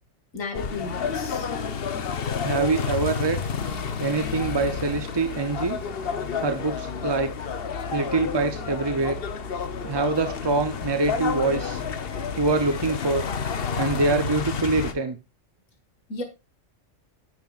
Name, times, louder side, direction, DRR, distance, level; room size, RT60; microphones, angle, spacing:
voice 1, 0.3-1.5 7.9-8.0 16.1-16.2, left 2 dB, 90° left, 5 dB, 2.2 m, -33 dB
sound 1, 0.5-14.9, left 6 dB, 50° left, 1.0 m, -30 dB
voice 2, 2.4-3.4 4.0-5.8 6.4-7.3 7.9-9.2 9.8-11.8 12.4-13.2 13.8-15.2, right 3 dB, 35° right, 8 dB, 0.4 m, -24 dB
9.5 x 8.9 x 2.4 m, 0.25 s
omnidirectional pair, 1.3 m